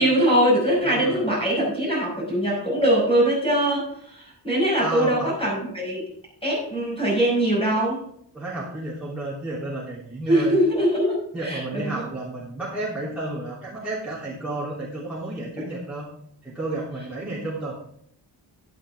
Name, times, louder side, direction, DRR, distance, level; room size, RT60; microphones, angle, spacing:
voice 1, 0.0-6.1 6.4-8.0 10.3-12.0 15.6-15.7, right 1 dB, 15° left, -5 dB, 5.6 m, -22 dB
voice 2, 0.8-1.3 4.8-5.3 8.3-10.6 11.3-16.1 16.4-17.8, right 2 dB, 5° right, -7 dB, 3.0 m, -31 dB
11.5 x 11.0 x 3.5 m, 0.66 s
wide cardioid pair, 140°, 41 cm